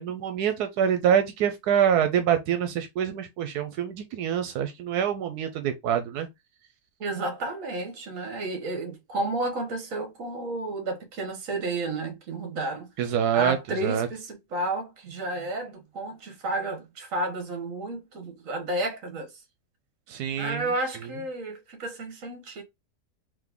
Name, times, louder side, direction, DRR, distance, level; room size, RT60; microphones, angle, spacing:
voice 1, 0.0-6.3 13.0-14.1 20.1-20.7, right 9 dB, 85° right, 1.2 m, -25 dB
voice 2, 7.0-12.9 13.3-19.3 20.4-22.6, right 2 dB, 60° right, 1.5 m, -31 dB
3.8 x 2.9 x 3.6 m
omnidirectional pair, 1.7 m